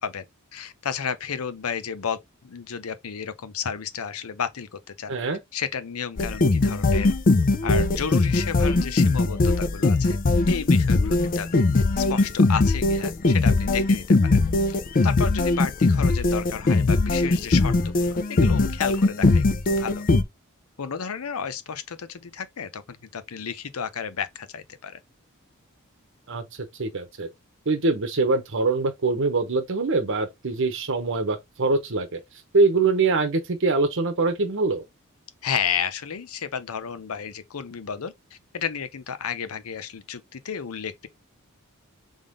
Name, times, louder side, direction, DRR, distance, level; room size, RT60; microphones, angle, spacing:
voice 1, 0.5-4.7 5.0-5.1 5.5-7.1 7.6-10.2 10.5-14.4 14.7-14.8 15.0-20.0 20.8-25.0 35.4-41.1, left 7 dB, 85° left, 0.7 m, -32 dB
voice 2, 5.1-5.4 26.3-26.4 26.8-27.3 27.7-32.2 32.5-34.8, right 3 dB, 60° right, 0.9 m, -23 dB
sound 1, 6.2-20.2, left 3 dB, 40° left, 0.5 m, -20 dB
3.6 x 3.6 x 3.7 m
head